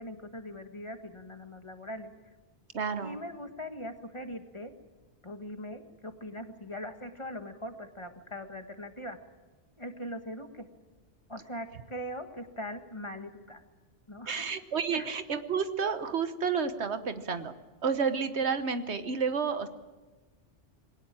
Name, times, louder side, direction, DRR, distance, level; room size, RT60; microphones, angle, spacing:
voice 1, 0.0-2.1 3.0-4.8 5.2-9.2 9.8-10.7 11.3-13.6 14.1-14.4 14.9-15.1, equal, 25° left, 7 dB, 1.6 m, -41 dB
voice 2, 2.7-3.2 14.3-17.5 17.8-19.7, right 6 dB, 70° right, 10 dB, 1.4 m, -30 dB
21.0 x 18.5 x 8.9 m, 1.2 s
omnidirectional pair, 1.2 m